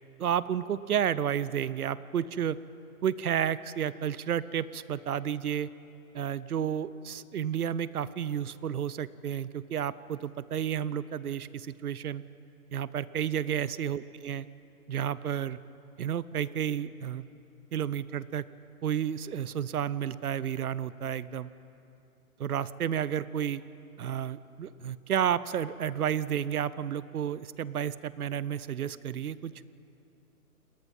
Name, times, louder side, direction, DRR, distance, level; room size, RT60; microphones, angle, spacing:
voice 1, 0.2-2.6 3.0-5.7 6.1-12.2 12.7-14.5 14.9-15.6 16.0-17.3 17.7-18.5 18.8-21.5 22.4-23.6 24.0-29.5, right 9 dB, 75° right, 17 dB, 0.9 m, -31 dB
29.5 x 19.5 x 5.5 m, 2.7 s
hypercardioid pair, 165°, 44 cm